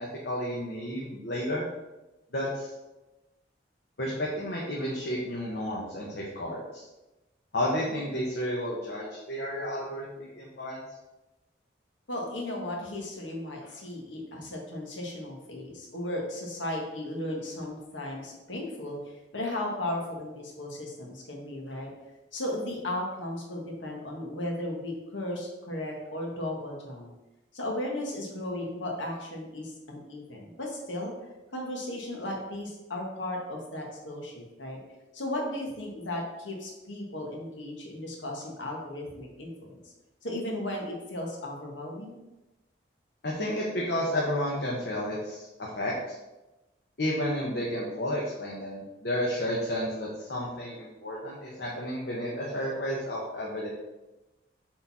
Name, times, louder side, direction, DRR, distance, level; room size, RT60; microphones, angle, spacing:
voice 1, 0.0-1.6 2.3-2.7 4.0-6.8 7.5-10.8 43.2-46.2 47.0-53.7, equal, 60° left, -4 dB, 1.1 m, -32 dB
voice 2, 12.1-19.0 19.3-21.9 22.3-27.1 27.5-31.1 31.5-34.8 35.1-39.7 40.2-42.2, left 1 dB, 85° left, 0 dB, 1.6 m, -35 dB
6.8 x 4.0 x 4.2 m, 1.0 s
head